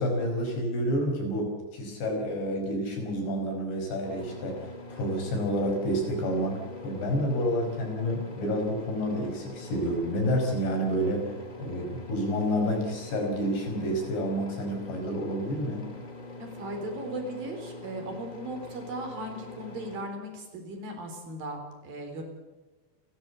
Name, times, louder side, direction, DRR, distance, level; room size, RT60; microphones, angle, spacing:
voice 1, 0.0-11.3 11.6-16.0, equal, 80° left, 2 dB, 7.5 m, -29 dB
sound 1, 4.0-20.0, left 2 dB, 30° left, 0.7 m, -44 dB
voice 2, 16.4-22.2, right 1 dB, 55° right, 3 dB, 5.5 m, -37 dB
30.0 x 12.5 x 8.3 m, 1.2 s
omnidirectional pair, 5.0 m